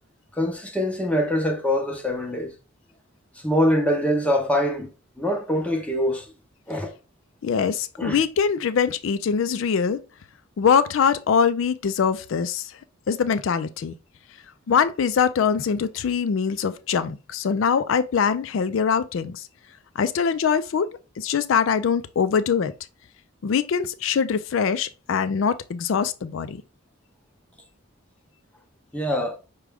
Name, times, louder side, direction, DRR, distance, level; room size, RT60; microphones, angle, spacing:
voice 1, 0.3-2.5 3.4-4.9 5.2-6.3 6.7-6.9 8.0-8.2 28.9-29.4, equal, 5° left, 0.6 m, -24 dB
voice 2, 7.4-10.0 10.6-12.7 13.1-13.9 14.7-19.5 20.0-20.9 21.2-22.7 23.4-26.6, left 6 dB, 65° left, 0.3 m, -23 dB
6.0 x 2.2 x 3.4 m
head